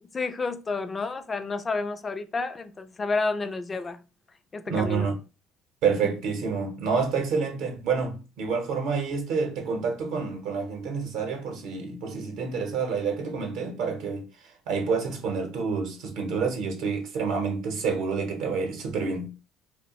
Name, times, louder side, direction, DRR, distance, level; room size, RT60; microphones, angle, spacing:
voice 1, 0.1-4.0 4.5-5.1, left 3 dB, 25° left, 0.3 m, -30 dB
voice 2, 4.7-5.2 5.8-14.3 14.7-19.3, right 5 dB, 75° right, 0.7 m, -28 dB
2.3 x 2.0 x 2.8 m
supercardioid pair, 90°, 0 cm